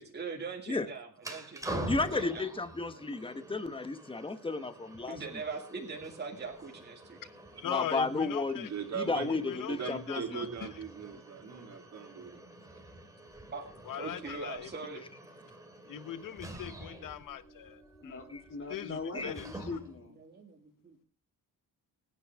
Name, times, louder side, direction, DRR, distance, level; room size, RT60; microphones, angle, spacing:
voice 1, 0.0-2.4 5.1-7.2 11.4-11.7 13.5-13.7 14.0-15.0 19.1-19.3 20.2-21.0, right 4 dB, 30° right, 0 dB, 2.2 m, -42 dB
sound 1, 1.2-20.1, right 1 dB, 10° right, 2.3 m, -46 dB
voice 2, 1.9-5.2 7.7-10.2 19.1-19.3, left 3 dB, 15° left, 11 dB, 1.0 m, -33 dB
voice 3, 7.6-8.7 9.3-10.5 13.8-14.7 15.9-18.2 18.7-19.4, left 10 dB, 60° left, 13 dB, 1.0 m, -40 dB
voice 4, 8.7-9.3 9.7-12.4, right 6 dB, 45° right, 3 dB, 3.2 m, -39 dB
voice 5, 18.0-20.2, left 4 dB, 35° left, 3 dB, 3.4 m, -41 dB
23.5 x 10.0 x 3.5 m, 0.34 s
wide cardioid pair, 175°, 36 cm